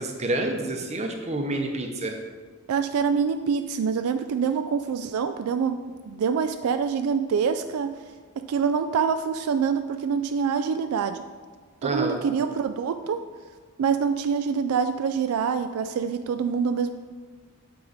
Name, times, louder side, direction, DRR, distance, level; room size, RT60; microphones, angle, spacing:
voice 1, 0.0-2.2 11.8-12.2, right 2 dB, 30° right, 4 dB, 0.8 m, -28 dB
voice 2, 2.7-5.8 6.1-8.0 8.5-11.2 11.8-13.2 13.8-16.9, right 6 dB, 75° right, 9 dB, 0.3 m, -25 dB
7.7 x 4.7 x 4.0 m, 1.5 s
head